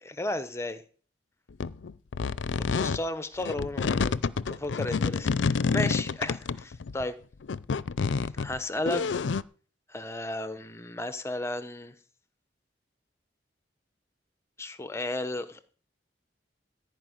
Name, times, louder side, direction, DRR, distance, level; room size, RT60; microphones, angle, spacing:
voice 1, 0.2-0.8 2.7-4.2 4.5-7.1 8.4-9.0 9.9-11.9 14.6-15.7, left 2 dB, 15° left, 0.9 m, -34 dB
sound 1, 1.6-3.0 3.4-7.0 7.4-9.4, left 5 dB, 80° left, 0.5 m, -28 dB
15.0 x 5.2 x 9.4 m
head